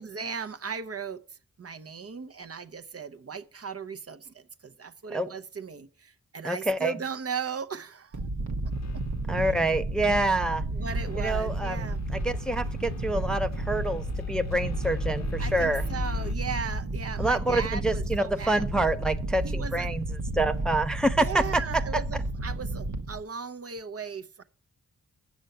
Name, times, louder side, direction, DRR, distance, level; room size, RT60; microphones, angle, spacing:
voice 1, 0.0-8.2 8.7-9.0 10.7-12.0 15.4-18.6 19.4-19.9 21.1-24.4, right 6 dB, 45° right, 0.8 m, -37 dB
voice 2, 6.4-6.9 9.3-10.6 11.2-11.8 12.2-15.8 17.2-20.1 20.4-21.4, right 1 dB, ahead, 0.5 m, -27 dB
sound 1, 8.1-23.2, right 2 dB, 65° right, 1.1 m, -32 dB
sound 2, 8.7-9.4 10.9-16.4, left 6 dB, 55° left, 0.7 m, -39 dB
7.9 x 6.2 x 6.7 m
cardioid pair, 55°, 33 cm